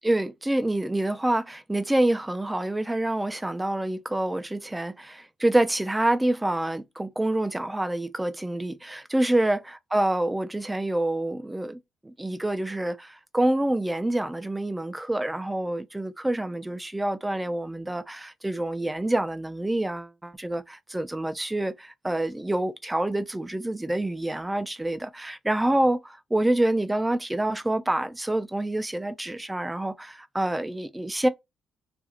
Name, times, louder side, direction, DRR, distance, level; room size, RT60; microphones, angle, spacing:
voice 1, 0.0-31.3, right 1 dB, 10° right, 0.4 m, -27 dB
2.4 x 2.4 x 2.8 m
cardioid pair, 90°, 0 cm